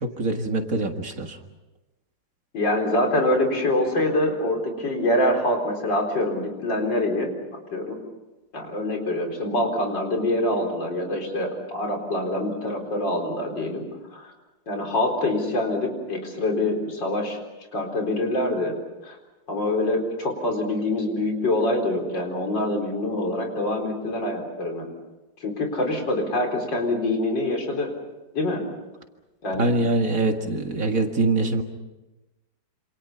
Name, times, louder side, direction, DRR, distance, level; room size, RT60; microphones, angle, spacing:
voice 1, 0.0-1.4 29.6-31.6, right 2 dB, 45° right, 4 dB, 2.1 m, -24 dB
voice 2, 2.5-7.3 7.7-8.0 8.5-13.9 14.1-14.3 14.7-17.4 17.7-18.7 19.0-19.2 19.5-24.9 25.4-27.9 28.3-28.7 29.4-29.8, left 1 dB, 70° left, 2 dB, 4.9 m, -25 dB
27.5 x 27.5 x 5.7 m, 1.1 s
omnidirectional pair, 2.0 m